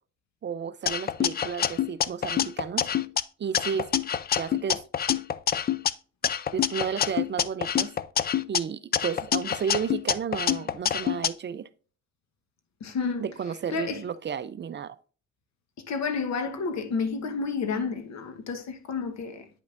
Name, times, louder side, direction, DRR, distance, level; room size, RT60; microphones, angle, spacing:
voice 1, 0.4-2.9 3.4-3.9 4.3-4.8 6.5-7.9 8.5-11.7 13.2-15.0, right 7 dB, 35° right, 0.5 m, -32 dB
sound 1, 0.9-3.2 3.5-5.9 6.2-8.6 8.9-11.3, left 9 dB, 35° left, 0.4 m, -26 dB
voice 2, 12.8-14.1 15.8-19.5, left 5 dB, 65° left, 1.2 m, -31 dB
9.1 x 5.4 x 2.5 m
cardioid pair, 90°, 30 cm